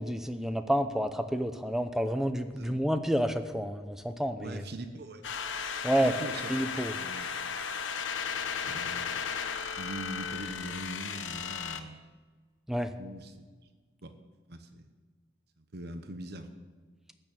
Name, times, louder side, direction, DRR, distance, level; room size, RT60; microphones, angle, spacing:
voice 1, 0.0-4.6 5.8-6.1 6.5-6.9 12.7-12.9, equal, ahead, 9 dB, 0.6 m, -29 dB
voice 2, 4.4-5.2 6.0-6.5 6.9-7.3 8.5-9.1 9.8-12.0 13.0-13.3 14.0-14.2 14.5-14.8 15.6-16.7, right 1 dB, 55° right, 8 dB, 1.0 m, -42 dB
sound 1, 5.2-11.8, left 6 dB, 80° left, 1.0 m, -35 dB
14.5 x 6.5 x 9.1 m, 1.4 s
head